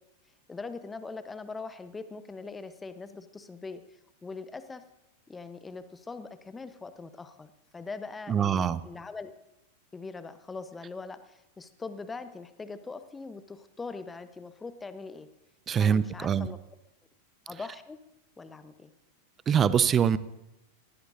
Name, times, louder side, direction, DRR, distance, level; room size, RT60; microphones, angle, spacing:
voice 1, 0.5-3.8 4.2-4.8 5.3-9.3 9.9-15.3 15.8-16.6 17.5-18.0 18.4-18.9, left 4 dB, 15° left, 12 dB, 1.0 m, -41 dB
voice 2, 8.3-8.8 15.7-16.5 19.5-20.2, right 8 dB, 25° right, 17 dB, 0.6 m, -24 dB
20.0 x 16.0 x 2.7 m, 0.92 s
figure-of-eight pair, 90°, 0 cm